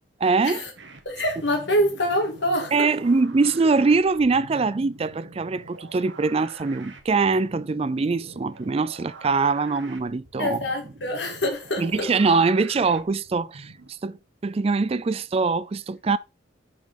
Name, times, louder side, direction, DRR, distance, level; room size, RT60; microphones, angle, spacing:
voice 1, 0.2-0.6 2.7-10.6 11.8-14.2 14.4-16.2, right 4 dB, 30° right, 0.4 m, -23 dB
sound 1, 0.8-13.9, right 2 dB, 75° right, 1.6 m, -46 dB
voice 2, 1.0-2.9 10.4-12.1, equal, 70° left, 2.7 m, -25 dB
6.8 x 5.2 x 5.1 m
head